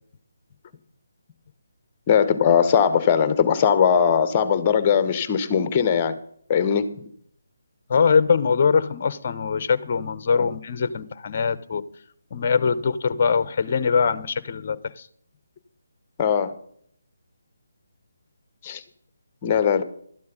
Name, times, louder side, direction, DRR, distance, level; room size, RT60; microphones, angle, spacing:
voice 1, 2.1-6.1 6.5-7.1 10.4-10.5 16.2-16.6 18.6-18.8 19.4-19.8, left 7 dB, 25° left, 1.2 m, -20 dB
voice 2, 7.9-11.8 12.3-14.8, left 5 dB, 40° left, 0.9 m, -22 dB
12.5 x 9.4 x 5.2 m
figure-of-eight pair, 150°, 0 cm